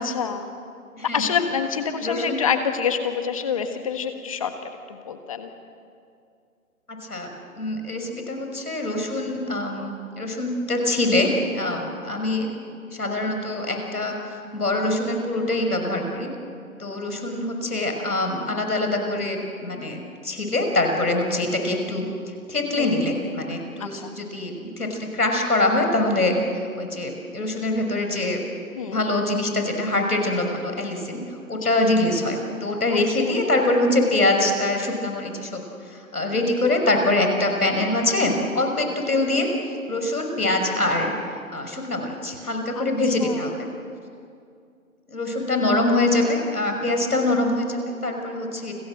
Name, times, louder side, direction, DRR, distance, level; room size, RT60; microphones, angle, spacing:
voice 1, 0.0-0.5 1.1-5.5 22.8-23.0 23.8-24.1 28.7-29.0 31.6-31.7 33.3-33.4 36.3-36.4 42.8-42.9 43.2-43.4 45.7-45.8, left 7 dB, 25° left, 7 dB, 1.5 m, -27 dB
voice 2, 2.0-2.4 6.9-12.5 12.9-16.3 16.8-22.1 22.5-26.4 26.8-28.4 28.9-31.2 31.5-39.5 39.9-41.1 41.5-43.7 45.1-48.8, left 2 dB, 90° left, 4 dB, 6.3 m, -24 dB
30.0 x 21.5 x 7.7 m, 2.4 s
hypercardioid pair, 160°, 44 cm